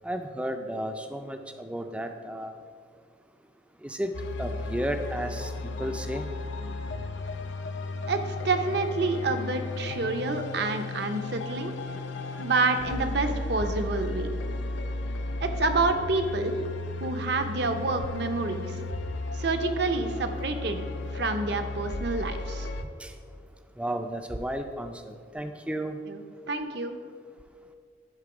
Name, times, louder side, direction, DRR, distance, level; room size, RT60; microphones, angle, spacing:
voice 1, 0.0-2.6 3.8-4.1 4.4-6.3 23.0-23.2 23.8-26.0, right 1 dB, 5° right, 6 dB, 0.4 m, -33 dB
sound 1, 4.1-22.8, left 2 dB, 70° left, 0.5 m, -34 dB
voice 2, 8.1-11.7 12.4-14.3 15.4-16.5 17.0-18.8 19.3-22.7 26.1-26.2 26.5-27.0, right 3 dB, 60° right, 7 dB, 0.6 m, -28 dB
10.5 x 3.8 x 4.9 m, 2.1 s
head